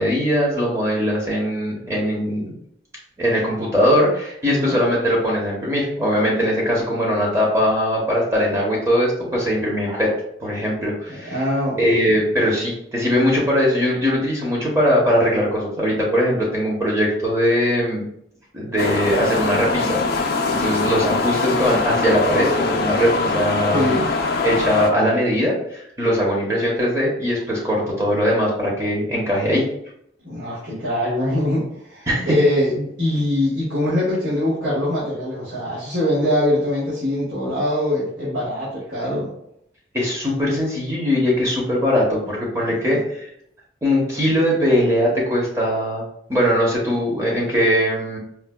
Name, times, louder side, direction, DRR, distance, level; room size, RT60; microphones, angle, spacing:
voice 1, 0.0-2.5 3.2-10.1 10.4-11.4 11.8-18.0 18.5-23.9 24.4-29.6 32.1-32.4 39.9-43.3 43.8-46.0 46.3-48.2, equal, 15° right, -3 dB, 0.7 m, -20 dB
voice 2, 4.4-4.8 11.1-12.2 23.7-24.1 30.2-39.3 42.7-43.0, left 1 dB, 75° right, -10 dB, 1.3 m, -23 dB
sound 1, 18.8-24.9, left 3 dB, 50° left, 0.3 m, -22 dB
4.4 x 2.2 x 2.2 m, 0.72 s
head